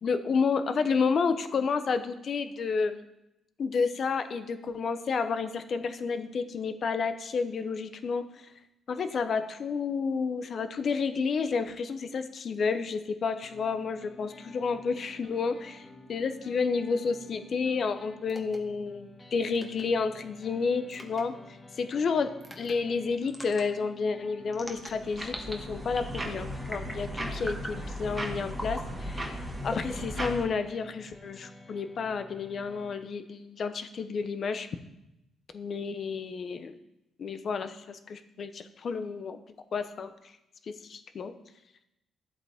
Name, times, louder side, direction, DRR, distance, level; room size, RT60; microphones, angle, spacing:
voice 1, 0.0-3.1 3.6-8.5 8.9-22.3 22.6-34.7 35.5-36.7 37.2-39.4 39.7-40.1 40.6-41.3, left 5 dB, 50° left, 10 dB, 0.9 m, -31 dB
sound 1, 13.4-33.0, left 2 dB, 30° left, 1.9 m, -51 dB
sound 2, 18.3-18.6 19.5-19.8 20.9-21.2 22.4-22.7 23.3-23.6 24.5-25.5 25.9-26.3 26.7-27.0 27.4-27.8 28.5-28.8 29.7-30.6, equal, ahead, 1.5 m, -41 dB
sound 3, 24.7-30.4, equal, 20° right, 1.9 m, -36 dB
13.5 x 7.8 x 3.6 m, 0.88 s
cardioid pair, 90°, 0 cm